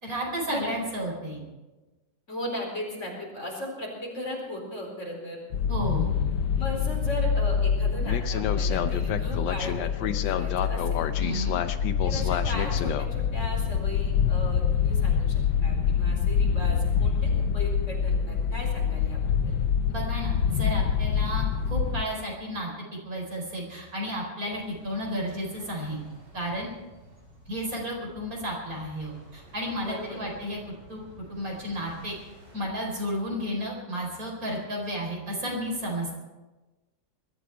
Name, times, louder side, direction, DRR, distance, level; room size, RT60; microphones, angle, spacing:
voice 1, 0.0-1.4 5.7-6.1 11.2-11.6 19.9-26.0 26.3-26.7 27.5-30.6 30.9-32.2 32.5-36.1, equal, 50° right, -1 dB, 5.0 m, -32 dB
voice 2, 2.3-5.4 6.6-11.0 12.0-19.6 29.8-30.4, left 1 dB, 40° left, -1 dB, 4.8 m, -37 dB
sound 1, 5.5-22.0, left 7 dB, 85° left, 1.6 m, -25 dB
sound 2, 24.4-32.6, right 1 dB, 65° right, 5.6 m, -52 dB
21.5 x 13.5 x 4.6 m, 1.1 s
omnidirectional pair, 2.0 m